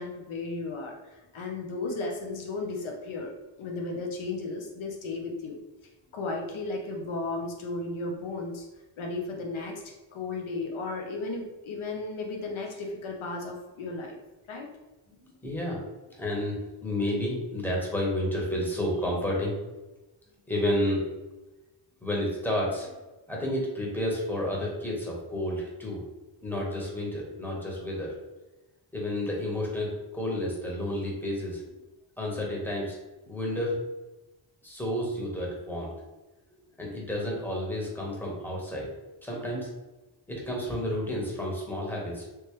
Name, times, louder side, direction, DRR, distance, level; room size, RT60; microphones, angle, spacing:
voice 1, 0.0-3.3 3.6-5.6 6.1-8.7 9.0-14.2 14.5-14.7, left 3 dB, 75° left, 1 dB, 0.8 m, -34 dB
voice 2, 15.1-19.6 20.5-21.0 22.0-22.9 23.3-26.0 26.4-28.1 28.9-31.6 32.2-33.0 33.2-33.8 34.6-35.9 36.8-38.9 39.2-39.7 40.3-42.2, left 1 dB, 5° left, -3 dB, 1.3 m, -31 dB
3.3 x 3.0 x 3.2 m, 1.1 s
cardioid pair, 60°, 48 cm